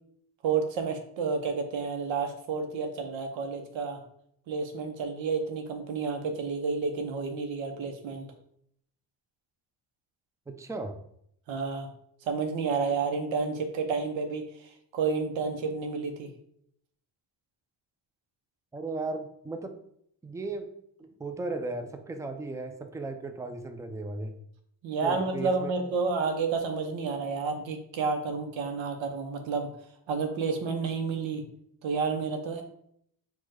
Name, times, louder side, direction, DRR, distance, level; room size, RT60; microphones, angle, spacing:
voice 1, 0.4-4.0 4.5-8.3 11.5-11.9 12.3-16.3 24.8-29.7 30.1-31.4 31.8-32.6, right 4 dB, 85° right, 5 dB, 0.8 m, -30 dB
voice 2, 10.5-11.0 18.7-19.7 20.2-20.7 21.0-24.4 25.0-25.7, right 2 dB, 5° right, 6 dB, 0.5 m, -36 dB
4.5 x 2.4 x 4.6 m, 0.70 s
cardioid pair, 60°, 45 cm